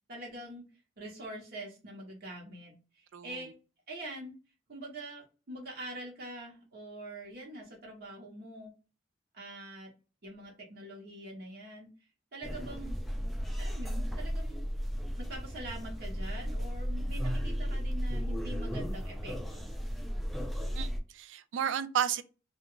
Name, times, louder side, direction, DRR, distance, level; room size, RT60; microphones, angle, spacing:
voice 1, 0.1-0.6 1.0-3.5 3.9-4.3 4.7-8.7 9.3-9.9 10.2-11.9 12.3-13.0 13.6-14.8 15.2-19.7, right 1 dB, 55° right, 0.8 m, -44 dB
voice 2, 3.1-3.5 20.8-22.2, right 9 dB, 80° right, 0.3 m, -33 dB
sound 1, 12.4-21.0, equal, ahead, 0.3 m, -34 dB
2.3 x 2.1 x 3.6 m
head